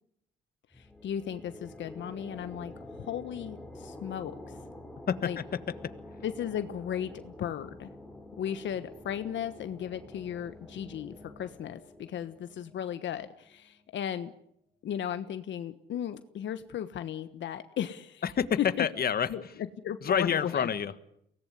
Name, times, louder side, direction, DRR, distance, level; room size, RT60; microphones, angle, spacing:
voice 1, 0.7-4.6 5.2-5.4 6.2-7.9 8.4-14.3 14.8-18.2 18.8-18.9 19.3-19.4 19.8-20.7, left 9 dB, 70° left, 10 dB, 1.3 m, -36 dB
sound 1, 0.7-14.1, left 1 dB, 5° left, 3.8 m, -48 dB
voice 2, 5.1-5.9 18.2-19.5 20.0-20.9, left 8 dB, 50° left, 12 dB, 1.6 m, -29 dB
24.0 x 18.5 x 9.6 m, 0.76 s
cardioid pair, 90°, 20 cm